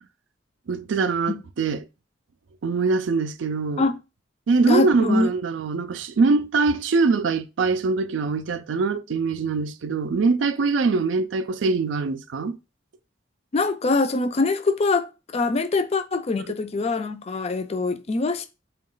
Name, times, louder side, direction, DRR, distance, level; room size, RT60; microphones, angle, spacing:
voice 1, 0.7-1.8 2.6-3.9 4.5-12.6, right 4 dB, 70° right, 0.4 m, -23 dB
voice 2, 4.7-5.3 13.5-18.5, left 3 dB, 35° left, 0.4 m, -23 dB
3.9 x 2.3 x 3.7 m
head